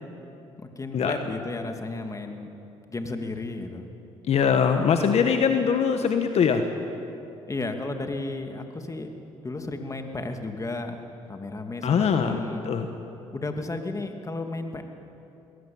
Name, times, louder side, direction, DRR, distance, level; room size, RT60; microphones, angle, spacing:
voice 1, 0.8-2.5 2.9-3.9 7.5-9.1 9.4-11.0 11.3-12.7 13.3-14.8, left 2 dB, 25° left, 5 dB, 2.6 m, -33 dB
voice 2, 4.3-6.6 11.8-12.9, left 6 dB, 60° left, 6 dB, 1.5 m, -22 dB
22.0 x 17.5 x 8.8 m, 2.8 s
supercardioid pair, 65°, 12 cm